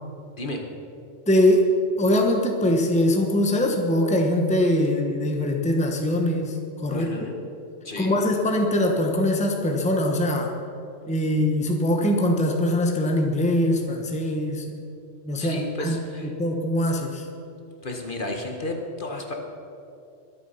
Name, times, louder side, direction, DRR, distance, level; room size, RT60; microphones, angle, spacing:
voice 1, 1.3-1.7 2.0-7.3 8.0-10.5 11.1-14.8 15.3-16.0 16.3-17.3, left 1 dB, 5° left, 2 dB, 1.1 m, -22 dB
voice 2, 6.9-7.3 7.8-8.2 15.4-16.3 17.8-19.3, left 1 dB, 45° left, 2 dB, 1.6 m, -32 dB
22.5 x 8.4 x 5.7 m, 2.6 s
omnidirectional pair, 1.3 m